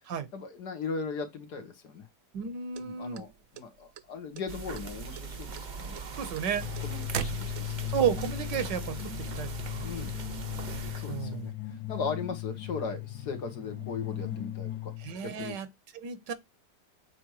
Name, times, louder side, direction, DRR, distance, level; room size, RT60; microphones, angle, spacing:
voice 1, 0.3-2.1 2.8-6.0 6.8-7.9 9.8-10.2 10.9-11.5 11.9-14.9 15.2-15.6, left 5 dB, 70° left, 1.6 m, -38 dB
voice 2, 2.3-3.2 6.2-6.7 7.9-9.0 9.4-9.9 11.1-11.5 15.0-15.7 15.9-16.3, right 8 dB, 85° right, 1.7 m, -32 dB
sound 1, 2.7-4.0 4.3-4.9 5.2-8.0, right 10 dB, 65° right, 0.9 m, -37 dB
sound 2, 4.5-11.5, right 5 dB, 45° right, 0.6 m, -40 dB
sound 3, 6.5-15.1, left 13 dB, 85° left, 1.7 m, -37 dB
7.7 x 4.6 x 3.0 m
omnidirectional pair, 1.9 m